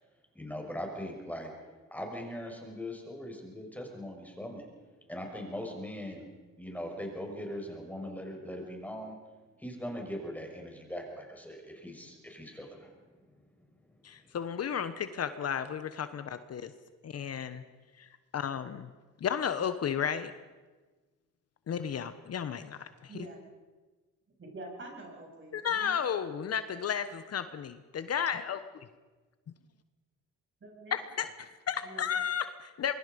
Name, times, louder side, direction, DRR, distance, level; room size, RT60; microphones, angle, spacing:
voice 1, 0.3-1.5 1.9-4.7 5.1-6.3 6.6-9.2 9.6-13.5, equal, 5° left, 1 dB, 6.0 m, -40 dB
voice 2, 14.0-16.7 17.0-17.6 18.0-18.1 18.3-18.9 19.2-20.3 21.7-23.1 25.5-28.6 30.9-32.9, left 8 dB, 55° left, 11 dB, 1.2 m, -33 dB
voice 3, 24.4-26.0 30.6-31.0 31.8-32.1, right 2 dB, 40° right, 0 dB, 7.9 m, -46 dB
24.0 x 23.0 x 5.4 m, 1.3 s
cardioid pair, 90°, 30 cm